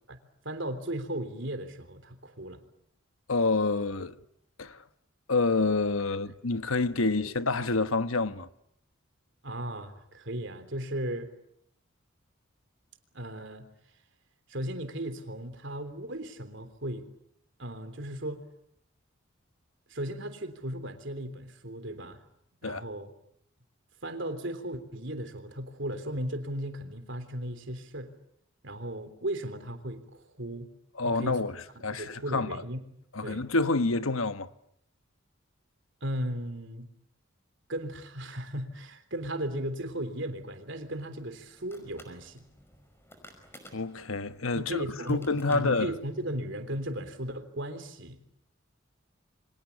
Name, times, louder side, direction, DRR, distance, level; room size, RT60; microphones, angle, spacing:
voice 1, 0.4-2.6 7.2-7.3 9.4-11.3 13.1-13.7 14.5-17.1 17.6-18.4 19.9-22.2 22.6-23.1 24.0-28.1 28.6-30.7 31.0-31.4 31.7-32.8 33.2-33.4 36.0-36.9 37.7-42.5 44.5-48.2, right 1 dB, 60° right, 3.4 m, -36 dB
voice 2, 3.3-4.2 4.6-4.8 5.3-8.5 22.6-22.8 31.0-32.6 33.1-34.5 43.7-45.9, left 3 dB, 90° left, 1.2 m, -28 dB
sound 1, 40.7-46.3, left 1 dB, 10° left, 5.3 m, -56 dB
29.0 x 25.0 x 8.4 m
head